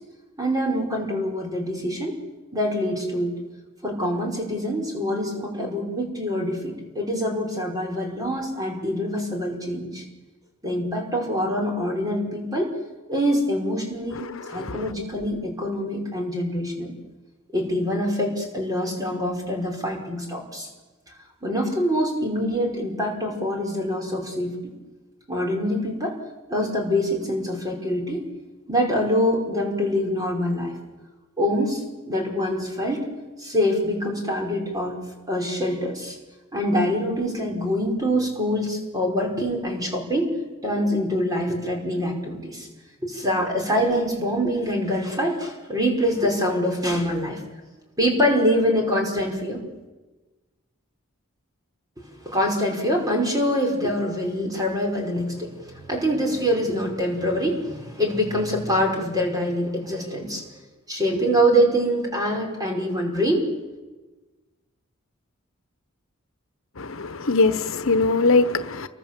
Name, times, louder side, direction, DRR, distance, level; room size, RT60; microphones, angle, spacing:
voice 1, 0.4-2.2 2.5-3.4 3.8-10.0 10.6-12.7 13.1-16.9 17.5-20.7 21.4-24.5 25.3-26.1 26.5-28.2 28.7-30.8 31.4-33.0 33.4-35.0 35.3-36.2 36.5-40.3 40.6-42.7 43.0-47.4 48.0-49.6 52.2-60.4 60.9-63.4, equal, 20° right, 1 dB, 5.4 m, -25 dB
voice 2, 66.8-68.9, left 3 dB, 70° left, 11 dB, 1.2 m, -21 dB
29.0 x 23.5 x 7.6 m, 1.2 s
head